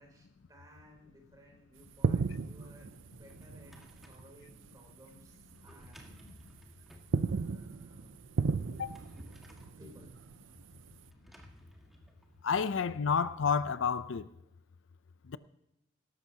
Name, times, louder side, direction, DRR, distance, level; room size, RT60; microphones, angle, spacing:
voice 1, 0.0-6.2 6.6-6.7 7.2-8.2 9.8-10.1 10.8-10.9, equal, 20° right, 3.5 m, -59 dB
sound 1, 1.8-4.8 5.0-5.3 5.8-6.6 6.9-11.1, right 4 dB, 70° right, 0.5 m, -35 dB
Drawer open or close, 3.1-4.3 5.5-7.1 8.5-9.8 11.1-12.8, equal, ahead, 1.7 m, -56 dB
voice 2, 12.4-14.3 15.3-15.4, left 6 dB, 70° left, 0.5 m, -30 dB
18.0 x 13.5 x 2.8 m
head